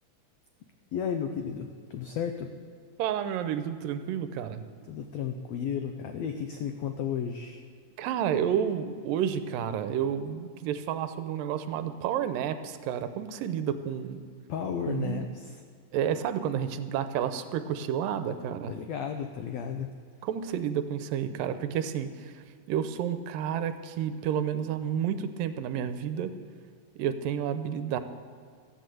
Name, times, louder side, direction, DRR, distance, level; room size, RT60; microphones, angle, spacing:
voice 1, 0.9-1.7 1.9-2.5 4.9-7.6 14.5-15.3 18.7-19.9, left 8 dB, 85° left, 6 dB, 1.5 m, -33 dB
voice 2, 3.0-4.6 8.0-14.2 14.9-15.3 15.9-18.8 20.2-22.3 22.7-26.3 27.0-28.0, right 9 dB, 85° right, 10 dB, 2.4 m, -30 dB
13.5 x 10.5 x 7.7 m, 2.1 s
omnidirectional pair, 3.9 m